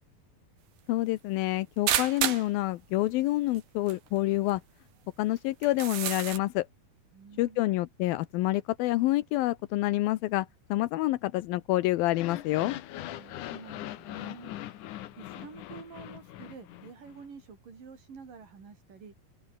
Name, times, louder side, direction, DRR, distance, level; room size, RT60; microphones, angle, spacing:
voice 1, 0.9-4.6 5.2-6.7 7.4-12.8, left 17 dB, 85° left, 2.7 m, -28 dB
sound 1, 1.9-2.5 3.6-3.7 3.9-4.0 4.5-4.6 5.6-6.4, right 11 dB, 90° right, 3.6 m, -29 dB
voice 2, 7.1-7.9 13.1-14.9 15.2-19.1, right 5 dB, 65° right, 6.5 m, -49 dB
sound 2, 12.0-17.2, left 14 dB, 70° left, 2.3 m, -41 dB
open air
omnidirectional pair, 4.1 m